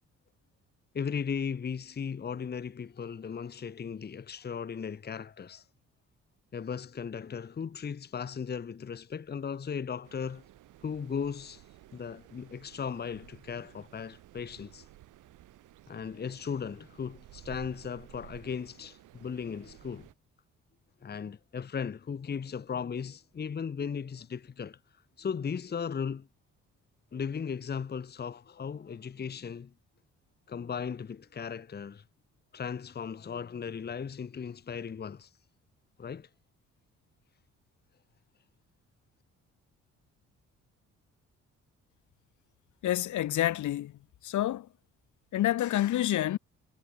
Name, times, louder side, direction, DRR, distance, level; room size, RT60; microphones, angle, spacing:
voice 1, 0.9-5.6 6.5-10.4 10.8-11.6 11.9-14.9 15.9-20.1 21.0-24.8 25.2-26.3 27.1-29.7 30.5-32.0 32.5-35.3 36.0-36.3, left 6 dB, 35° left, 1.1 m, -37 dB
sound 1, 10.0-20.1, right 15 dB, 85° right, 7.5 m, -54 dB
voice 2, 42.8-44.7 45.3-46.4, left 13 dB, 75° left, 1.9 m, -28 dB
cardioid pair, 90°, 30 cm